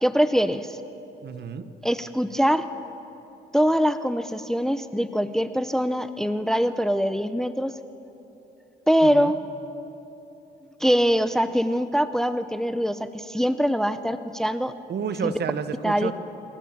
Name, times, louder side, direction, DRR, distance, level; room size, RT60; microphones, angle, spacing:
voice 1, 0.0-0.8 1.8-2.7 3.5-7.7 8.9-9.4 10.8-14.7 15.2-15.3 15.8-16.1, equal, ahead, 12 dB, 0.7 m, -23 dB
voice 2, 1.2-1.7 9.0-9.3 14.9-16.1, right 6 dB, 55° right, 11 dB, 1.2 m, -30 dB
26.0 x 13.5 x 7.4 m, 3.0 s
cardioid pair, 90°, 20 cm